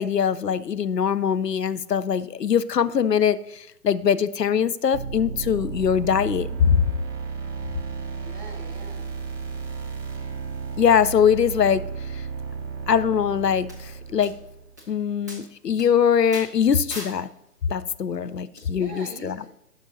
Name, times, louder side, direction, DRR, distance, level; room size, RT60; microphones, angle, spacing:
voice 1, 0.0-6.8 10.8-11.8 12.1-12.2 12.9-14.3 14.9-17.3 17.7-19.4, left 7 dB, 80° left, 14 dB, 0.6 m, -22 dB
sound 1, 4.9-14.8, right 5 dB, 70° right, 1.2 m, -33 dB
voice 2, 8.1-9.0 18.7-19.5, right 3 dB, 40° right, 0 dB, 2.6 m, -42 dB
sound 2, 13.7-13.8 14.2-14.3 14.8-14.9 15.3-15.4 15.8-15.9 16.3-16.5 16.9-17.2 18.6-18.7, left 1 dB, 10° right, 0.6 m, -37 dB
14.5 x 6.1 x 2.7 m, 0.83 s
figure-of-eight pair, 135°, 48 cm